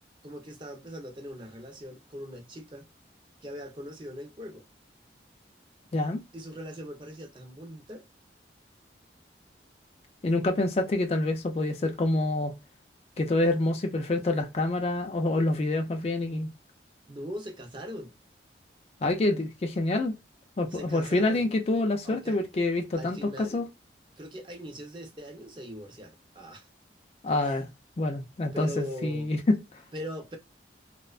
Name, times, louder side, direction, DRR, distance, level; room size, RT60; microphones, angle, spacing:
voice 1, 0.2-2.9 3.4-4.6 6.3-8.1 17.1-18.1 20.7-21.4 22.0-22.4 23.0-23.6 24.2-26.7 27.3-27.6 28.5-29.3 29.9-30.4, equal, 25° right, 0.5 m, -40 dB
voice 2, 10.2-12.5 13.2-16.5 19.0-20.1 20.6-23.7 27.2-27.7 28.0-29.8, left 2 dB, 35° left, 0.3 m, -27 dB
2.5 x 2.1 x 2.3 m
head